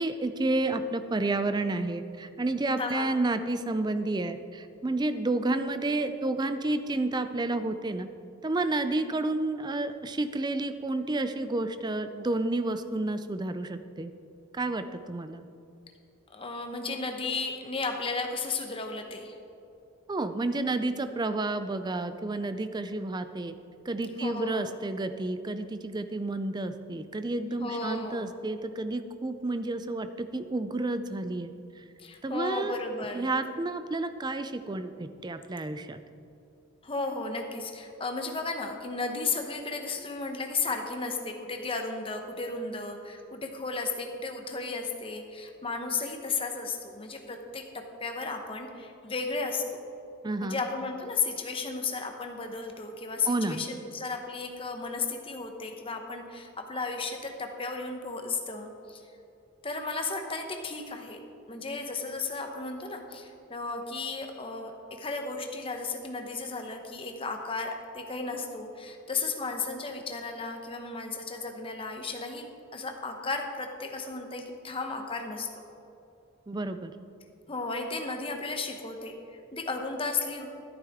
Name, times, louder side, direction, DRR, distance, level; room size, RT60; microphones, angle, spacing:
voice 1, 0.0-8.1 8.4-14.1 14.5-15.4 20.1-23.5 23.9-31.8 32.2-32.8 33.1-36.0 50.2-50.6 53.3-53.6 76.5-76.9, right 2 dB, 20° right, 10 dB, 0.4 m, -30 dB
voice 2, 2.8-3.1 16.3-19.4 24.2-24.7 27.6-28.3 32.0-33.3 36.8-49.8 50.4-59.0 59.6-61.2 61.5-75.5 77.5-80.5, left 4 dB, 25° left, 4 dB, 0.9 m, -34 dB
12.5 x 11.0 x 3.5 m, 2.7 s
head